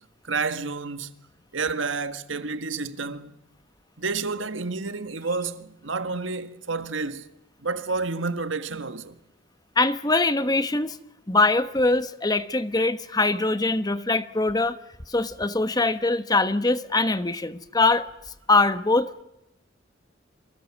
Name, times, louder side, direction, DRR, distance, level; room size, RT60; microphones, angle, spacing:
voice 1, 0.3-1.2 1.5-3.4 4.0-7.3 7.6-9.2, right 4 dB, 85° right, 1.6 m, -30 dB
voice 2, 9.8-11.0 11.3-14.7 15.1-18.1 18.5-19.2, left 3 dB, 20° left, 1.1 m, -22 dB
27.5 x 24.5 x 7.3 m
head